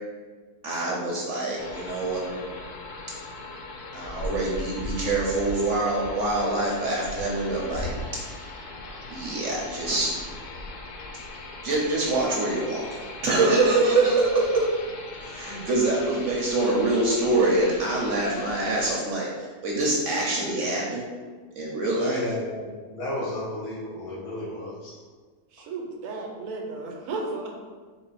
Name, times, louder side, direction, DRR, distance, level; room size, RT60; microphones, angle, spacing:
voice 1, 0.6-2.4 3.9-7.9 9.1-10.1 11.6-14.6 15.2-21.0 21.5-22.3, right 2 dB, 65° right, -3 dB, 0.9 m, -25 dB
sound 1, 1.6-19.0, left 2 dB, 90° left, 1.1 m, -39 dB
voice 2, 22.0-25.0, left 1 dB, 75° left, -6 dB, 1.7 m, -33 dB
voice 3, 25.5-27.6, right 3 dB, 85° right, 1 dB, 1.1 m, -34 dB
4.0 x 2.0 x 3.9 m, 1.5 s
omnidirectional pair, 1.6 m